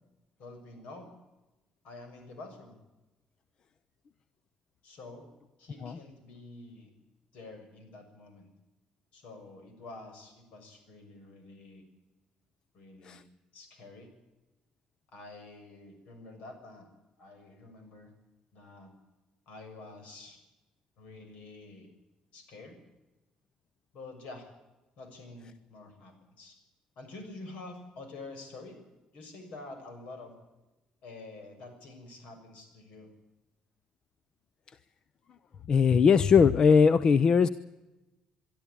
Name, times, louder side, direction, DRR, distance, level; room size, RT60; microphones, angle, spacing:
voice 1, 0.4-1.1 1.8-2.8 4.8-5.3 5.6-6.9 7.3-8.5 9.1-11.8 12.7-13.2 13.5-14.1 15.1-16.9 17.2-18.1 18.5-18.9 19.5-20.4 21.0-21.9 22.3-22.8 23.9-24.5 25.0-26.6 27.0-28.8 29.1-30.4 31.0-33.1, left 2 dB, 70° left, 6 dB, 6.6 m, -48 dB
voice 2, 35.7-37.5, left 6 dB, 35° left, 15 dB, 0.6 m, -20 dB
23.5 x 13.0 x 9.9 m, 1.1 s
cardioid pair, 165°, 2 cm